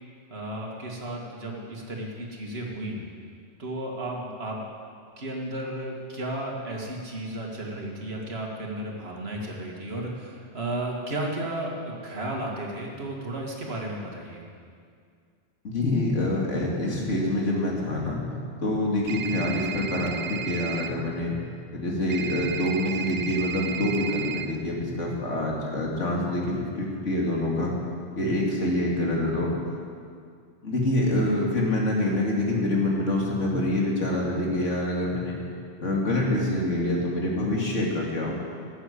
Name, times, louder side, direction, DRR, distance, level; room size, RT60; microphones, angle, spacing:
voice 1, 0.3-3.0 3.6-4.6 5.2-14.4 28.2-28.3, right 1 dB, 55° right, -1 dB, 2.3 m, -33 dB
voice 2, 15.6-18.2 18.6-21.4 21.7-27.7 28.2-29.5 30.6-35.4 35.8-38.3, left 1 dB, 85° left, -2 dB, 2.7 m, -26 dB
sound 1, 19.1-20.9 22.1-24.5, right 8 dB, 75° right, 1.0 m, -34 dB
13.0 x 8.9 x 8.2 m, 2.2 s
omnidirectional pair, 1.2 m